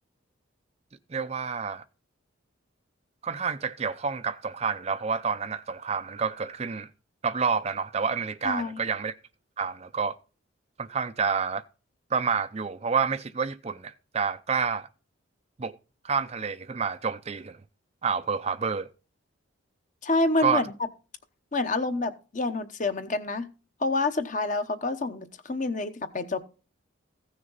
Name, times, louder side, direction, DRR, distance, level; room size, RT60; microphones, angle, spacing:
voice 1, 1.1-1.8 3.2-6.9 7.2-9.1 9.6-10.2 10.8-11.6 12.1-14.9 15.6-15.8 16.0-17.6 18.0-18.9 20.4-20.6, right 5 dB, 30° right, 0.5 m, -29 dB
voice 2, 8.4-8.8 20.0-20.7 21.5-23.5 23.8-26.4, left 2 dB, 40° left, 0.9 m, -28 dB
15.5 x 6.4 x 4.0 m
head